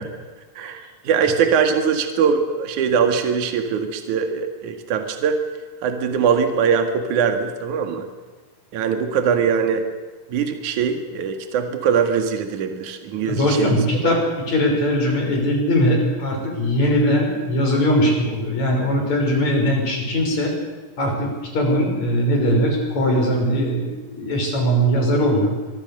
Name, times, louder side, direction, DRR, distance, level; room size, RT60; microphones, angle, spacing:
voice 1, 0.6-5.4 5.8-8.1 8.7-9.8 10.3-13.7 14.0-14.1, right 6 dB, 60° right, 6 dB, 3.2 m, -21 dB
voice 2, 13.3-20.5 21.0-25.5, equal, 50° left, 1 dB, 7.0 m, -20 dB
25.0 x 23.5 x 6.8 m, 1.3 s
omnidirectional pair, 4.0 m